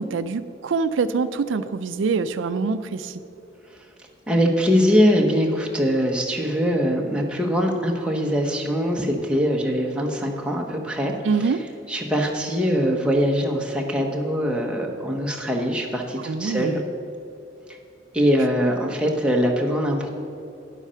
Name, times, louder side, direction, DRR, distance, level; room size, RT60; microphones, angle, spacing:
voice 1, 0.0-3.2 11.2-11.6 16.2-16.8, right 4 dB, 85° right, 12 dB, 0.4 m, -25 dB
voice 2, 4.3-11.1 11.4-11.6 11.9-16.8 17.7-17.8 18.1-20.1, equal, 5° right, 0 dB, 1.0 m, -22 dB
9.9 x 8.1 x 5.7 m, 2.8 s
head